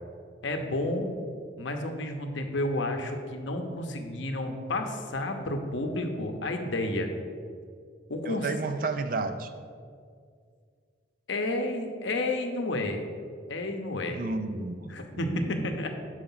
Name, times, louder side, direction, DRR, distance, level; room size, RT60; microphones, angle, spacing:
voice 1, 0.4-1.1 1.6-7.1 8.1-8.5 11.3-13.0 13.5-14.2 14.9-15.9, left 2 dB, 75° left, 5 dB, 0.7 m, -31 dB
voice 2, 8.3-9.5 14.1-15.6, right 3 dB, 45° right, 8 dB, 0.4 m, -32 dB
5.8 x 4.9 x 5.5 m, 2.1 s
head